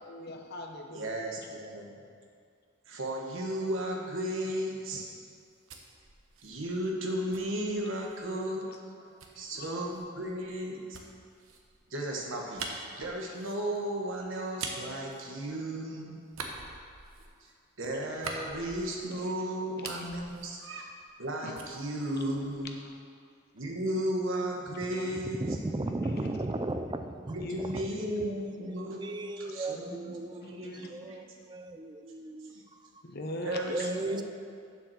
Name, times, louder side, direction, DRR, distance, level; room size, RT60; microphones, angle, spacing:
voice 1, 0.0-1.2 8.2-8.8 9.3-9.7 18.6-18.7 19.1-19.2 19.9-20.0 21.4-21.5 22.8-22.9 23.8-23.9 26.0-26.5 27.4-28.0 30.4-30.8 31.1-31.2 33.0-33.9, left 1 dB, 50° left, 2 dB, 1.0 m, -42 dB
voice 2, 0.9-2.0 2.8-5.1 6.4-8.7 9.0-9.1 9.3-11.0 11.9-16.2 17.4-17.5 17.8-20.8 21.2-22.8 23.5-25.6 27.3-29.0 29.4-31.2 32.4-32.6 33.4-34.2, right 1 dB, 70° right, 0 dB, 1.5 m, -35 dB
sound 1, 5.3-8.3 9.2-15.9 16.3-19.3 19.6-21.3 21.5-22.9, right 4 dB, 85° right, 1.0 m, -45 dB
voice 3, 25.1-27.8 28.8-30.5 30.9-32.5 33.7-34.2, right 2 dB, 20° right, 8 dB, 0.4 m, -35 dB
7.2 x 7.2 x 6.4 m, 2.3 s
head